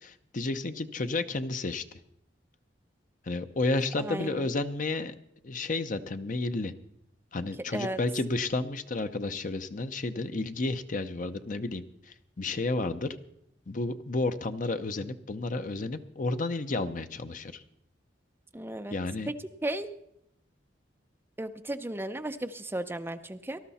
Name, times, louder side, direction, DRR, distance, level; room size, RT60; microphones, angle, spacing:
voice 1, 0.0-1.8 3.3-5.1 5.4-6.7 7.3-11.8 12.4-13.2 13.7-17.6 18.9-19.3, left 2 dB, 45° left, 10 dB, 0.7 m, -31 dB
voice 2, 4.0-4.5 7.7-8.0 18.5-19.0 19.3-19.4 19.6-19.9 21.4-23.6, right 1 dB, 10° right, 9 dB, 0.6 m, -34 dB
19.0 x 12.0 x 4.2 m, 0.75 s
head